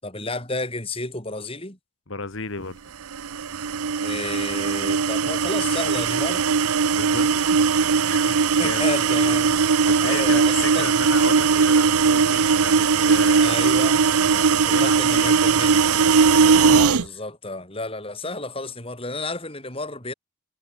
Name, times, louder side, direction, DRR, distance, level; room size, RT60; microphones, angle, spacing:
voice 1, 0.0-1.8 4.0-6.4 8.3-9.5 10.0-10.9 13.3-14.0 14.4-15.8 16.6-20.1, left 2 dB, 25° left, 6.8 m, -31 dB
voice 2, 2.1-2.8 6.9-7.7 8.0-8.9 9.9-13.6 14.2-15.5 16.4-16.8, left 3 dB, 55° left, 1.7 m, -34 dB
sound 1, 3.1-17.0, right 5 dB, 85° right, 0.7 m, -19 dB
head